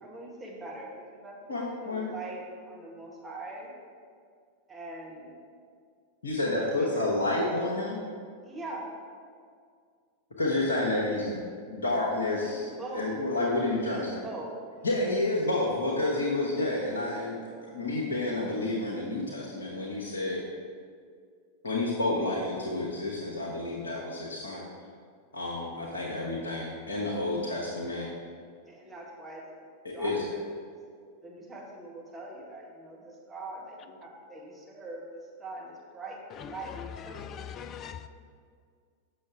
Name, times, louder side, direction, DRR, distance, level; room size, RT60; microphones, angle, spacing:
voice 1, 0.0-1.4 1.8-3.7 4.7-5.3 6.4-7.1 8.4-8.9 12.4-13.1 13.9-14.9 28.6-29.6 29.9-30.7 31.2-36.7 37.0-37.5, right 2 dB, 15° right, -3 dB, 1.5 m, -42 dB
voice 2, 1.5-2.1 6.2-8.0 10.4-14.2 14.8-17.4 17.6-20.4 21.6-24.6 25.3-28.1 29.8-30.2, left 2 dB, 70° left, -5 dB, 1.0 m, -30 dB
voice 3, 36.3-38.1, left 8 dB, 30° left, 12 dB, 0.3 m, -41 dB
7.6 x 6.4 x 3.5 m, 2.1 s
figure-of-eight pair, 90°, 0 cm